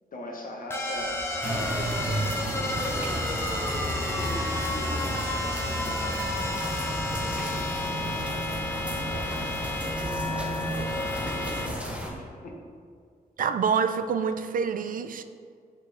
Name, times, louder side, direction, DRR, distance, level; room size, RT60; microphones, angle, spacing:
voice 1, 0.1-1.2 1.4-3.7 4.2-6.8 7.2-9.3 9.9-12.6, left 1 dB, 60° left, 0 dB, 1.1 m, -42 dB
sound 1, 0.7-11.7, left 1 dB, 15° left, 0.7 m, -31 dB
sound 2, 1.4-12.1, equal, 10° right, 1.1 m, -33 dB
voice 2, 13.4-15.2, right 6 dB, 60° right, 10 dB, 0.4 m, -26 dB
6.2 x 5.4 x 3.4 m, 2.1 s
cardioid pair, 100°, 16 cm